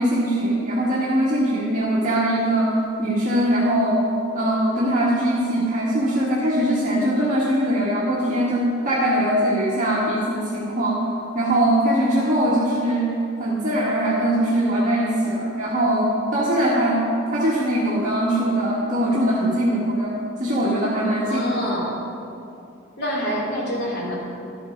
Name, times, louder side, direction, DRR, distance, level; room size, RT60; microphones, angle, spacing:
voice 1, 0.0-4.0 4.3-11.0 11.3-21.4, right 1 dB, 40° right, -7 dB, 1.6 m, -21 dB
voice 2, 21.2-22.0 23.0-24.1, equal, 55° left, -4 dB, 2.8 m, -26 dB
12.0 x 8.5 x 5.1 m, 2.7 s
head